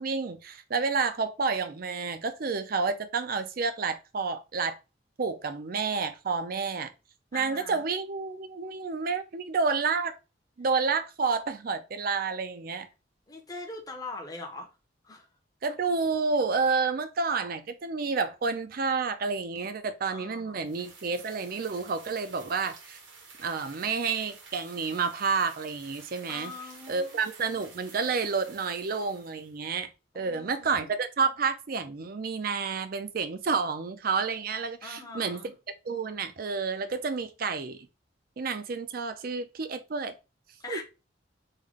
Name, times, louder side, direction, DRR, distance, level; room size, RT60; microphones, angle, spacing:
voice 1, 0.0-4.8 5.2-6.9 7.3-10.1 10.6-12.9 15.6-23.0 23.4-26.5 26.9-35.4 35.8-37.8 38.4-40.1 40.7-40.8, right 4 dB, 50° right, 0.5 m, -30 dB
voice 2, 7.3-7.8 13.3-14.7 15.0-15.3 20.1-20.7 26.3-27.2 30.1-30.9 34.8-35.5 40.6-40.8, left 3 dB, 20° left, 0.7 m, -42 dB
sound 1, 20.6-29.6, right 4 dB, 75° right, 1.1 m, -51 dB
3.6 x 2.2 x 3.5 m
head